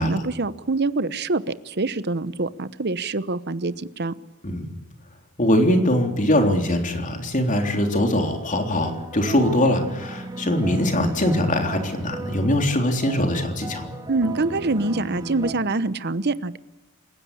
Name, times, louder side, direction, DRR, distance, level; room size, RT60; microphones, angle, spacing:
voice 1, 0.0-4.1 14.1-16.6, right 3 dB, 50° right, 15 dB, 1.0 m, -25 dB
voice 2, 5.4-13.9, left 1 dB, 35° left, 4 dB, 3.6 m, -22 dB
sound 1, 7.6-15.5, right 2 dB, 20° right, 2.7 m, -36 dB
28.5 x 16.0 x 8.6 m, 1.1 s
head